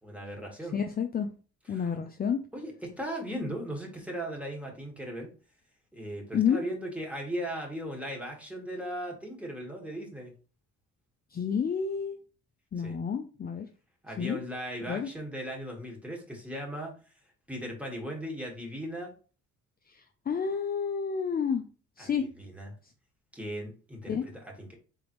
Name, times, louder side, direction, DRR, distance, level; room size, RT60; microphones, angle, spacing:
voice 1, 0.0-0.7 1.7-2.0 2.5-5.3 5.9-10.3 12.8-13.0 14.0-16.9 17.5-19.1 22.0-22.7 23.3-24.8, equal, 5° right, 0 dB, 1.5 m, -38 dB
voice 2, 0.7-1.3 1.7-2.4 6.3-6.6 11.3-12.2 12.7-13.7 14.2-14.4 14.9-15.1 19.9-21.6 22.0-22.3 24.1-24.2, left 7 dB, 30° left, 6 dB, 0.4 m, -30 dB
4.0 x 3.5 x 3.0 m, 0.36 s
cardioid pair, 90°, 30 cm